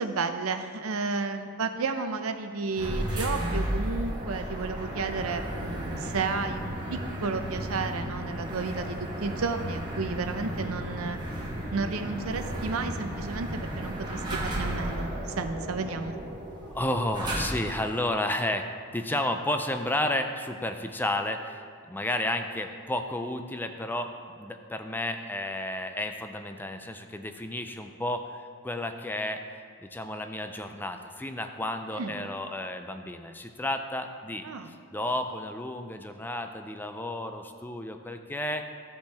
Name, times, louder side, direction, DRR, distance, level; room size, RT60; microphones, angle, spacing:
voice 1, 0.0-11.2 11.7-16.2 31.9-32.1 34.4-34.7, right 4 dB, 85° right, 8 dB, 0.6 m, -32 dB
sound 1, 2.7-17.9, equal, 20° right, 1.1 m, -34 dB
voice 2, 16.6-34.4 34.9-38.7, left 1 dB, 10° left, 6 dB, 0.4 m, -32 dB
13.5 x 5.3 x 3.4 m, 2.1 s
head